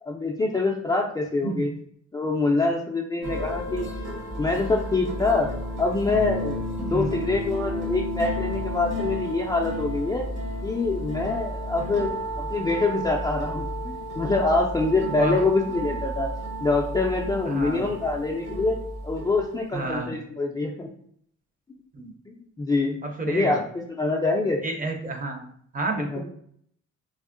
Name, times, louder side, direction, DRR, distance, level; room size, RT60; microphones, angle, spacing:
voice 1, 0.0-1.7 2.1-3.9 4.4-5.5 5.8-10.3 10.6-12.1 12.4-16.3 16.6-18.8 19.0-20.9 22.3-23.0 23.3-24.6 26.0-26.2, left 3 dB, 15° left, -2 dB, 0.3 m, -25 dB
sound 1, 3.2-20.0, equal, 60° right, 1.3 m, -32 dB
voice 2, 17.5-17.9 19.7-20.1 22.0-22.1 23.0-23.6 24.6-25.4 25.7-26.2, right 2 dB, 30° right, 4 dB, 0.6 m, -30 dB
3.5 x 2.0 x 2.5 m, 0.65 s
cardioid pair, 90°, 30 cm